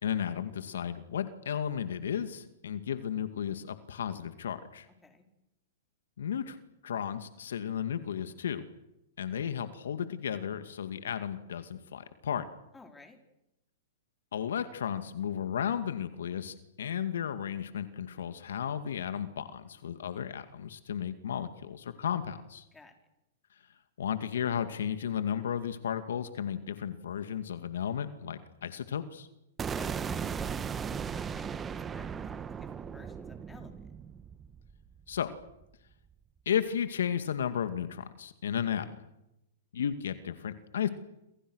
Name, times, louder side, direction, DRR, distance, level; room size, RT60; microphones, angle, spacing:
voice 1, 0.0-4.9 6.2-6.6 6.8-8.7 9.2-12.5 14.3-22.6 24.0-29.3 35.1-35.3 36.5-38.9 39.7-40.9, left 8 dB, 80° left, 10 dB, 2.2 m, -34 dB
voice 2, 12.7-13.2 22.7-22.9 29.7-33.8, left 3 dB, 10° left, 4 dB, 4.7 m, -53 dB
sound 1, 29.6-35.6, right 7 dB, 20° right, 1.3 m, -37 dB
28.0 x 27.5 x 6.5 m, 0.87 s
hypercardioid pair, 130°, 0 cm